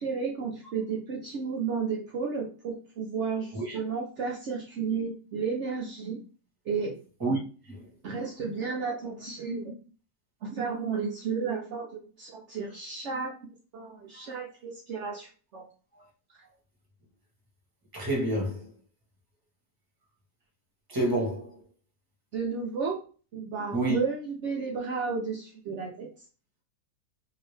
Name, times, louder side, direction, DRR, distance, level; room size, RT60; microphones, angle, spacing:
voice 1, 0.0-6.2 6.6-7.0 8.0-9.7 10.4-13.4 13.7-15.7 16.3-16.4 22.3-23.0 23.3-26.1, right 5 dB, 75° right, 0.6 m, -33 dB
voice 2, 17.9-18.6 20.9-21.5 23.7-24.0, right 2 dB, 15° right, 0.9 m, -28 dB
2.8 x 2.7 x 3.2 m
omnidirectional pair, 1.8 m